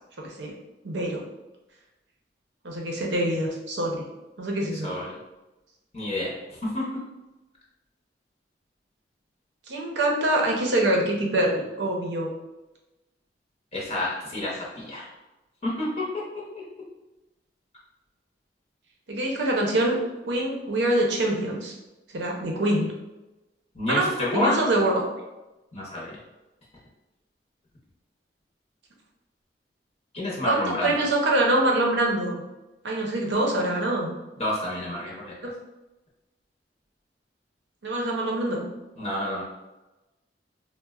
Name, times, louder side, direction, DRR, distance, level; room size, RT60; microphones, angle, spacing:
voice 1, 0.2-0.5 0.8-1.2 2.6-4.1 4.4-4.9 9.7-12.3 19.1-20.0 20.3-21.7 22.1-22.9 23.9-25.1 30.4-32.4 32.8-34.1 35.4-35.5 37.8-38.6, right 1 dB, 75° right, 0 dB, 0.6 m, -25 dB
voice 2, 5.9-6.3 6.6-6.8 13.7-15.1 15.6-16.4 23.8-24.6 25.7-26.2 30.1-30.9 34.4-35.5 39.0-39.4, left 1 dB, 35° left, -5 dB, 0.6 m, -29 dB
4.0 x 2.1 x 2.3 m, 1.0 s
head